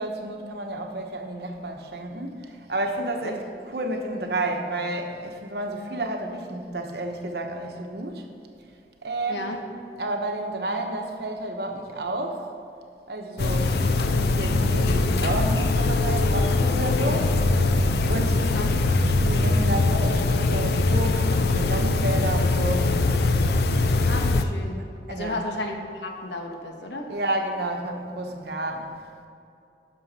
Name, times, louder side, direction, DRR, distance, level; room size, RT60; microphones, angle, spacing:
voice 1, 0.0-8.3 9.0-12.4 13.1-17.3 17.9-23.1 25.1-25.4 27.1-29.0, right 1 dB, 70° right, 3 dB, 1.0 m, -31 dB
sound 1, 13.4-24.4, left 2 dB, 65° left, 0.5 m, -22 dB
voice 2, 18.4-18.7 24.1-24.8 25.1-27.1, left 2 dB, 85° left, 2 dB, 1.2 m, -33 dB
11.0 x 6.3 x 4.2 m, 2.5 s
head